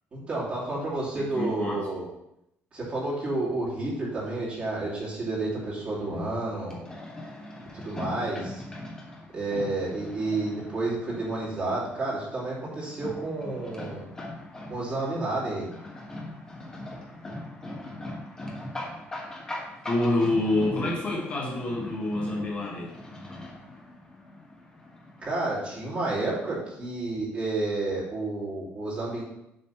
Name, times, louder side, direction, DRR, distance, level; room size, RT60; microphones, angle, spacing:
voice 1, 0.1-2.1 2.7-6.8 7.7-8.6 9.3-14.0 14.7-15.7 25.2-29.2, right 2 dB, 30° right, -7 dB, 3.0 m, -30 dB
voice 2, 1.2-1.8 19.9-22.9, left 2 dB, 30° left, -2 dB, 1.4 m, -27 dB
sound 1, 5.4-25.2, left 1 dB, 15° left, 1.4 m, -41 dB
7.7 x 4.1 x 5.8 m, 0.82 s
cardioid pair, 170°, 4 cm